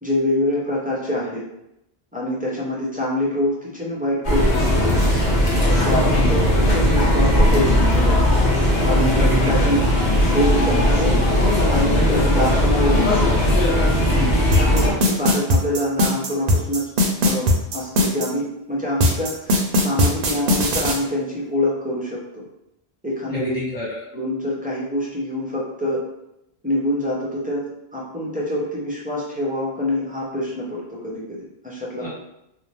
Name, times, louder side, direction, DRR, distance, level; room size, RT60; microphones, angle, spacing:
voice 1, 0.0-1.4 2.1-4.9 5.6-8.2 8.8-9.8 10.3-11.2 11.7-13.1 14.6-16.9 17.2-17.5 17.7-22.4 23.0-23.6 24.1-26.0 26.6-27.6 27.9-32.1, left 1 dB, 10° right, -7 dB, 0.5 m, -25 dB
sound 1, 4.2-14.9, equal, 50° left, 0.8 m, -18 dB
voice 2, 9.1-9.8 14.1-14.4 23.3-24.0 32.0-32.1, left 2 dB, 10° left, -9 dB, 1.2 m, -27 dB
sound 2, 14.5-18.3 19.0-21.0, left 1 dB, 65° right, 0.7 m, -18 dB
2.6 x 2.1 x 3.1 m, 0.84 s
omnidirectional pair, 1.0 m